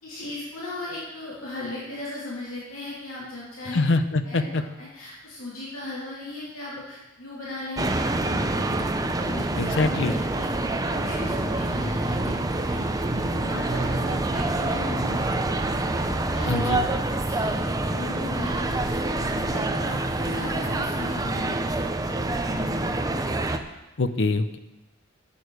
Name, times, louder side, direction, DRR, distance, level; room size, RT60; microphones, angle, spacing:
voice 1, 0.0-3.8 4.2-8.9 9.2-10.5 10.8-12.9 13.1-15.3 16.1-17.5 17.8-21.9 22.3-22.6, left 2 dB, 80° left, -7 dB, 3.0 m, -37 dB
voice 2, 3.7-4.6 9.6-10.2 16.5-16.9 24.0-24.6, left 3 dB, 60° left, 11 dB, 0.7 m, -24 dB
sound 1, 7.8-23.6, right 2 dB, 15° right, 0.6 m, -26 dB
11.0 x 8.6 x 4.8 m, 1.0 s
head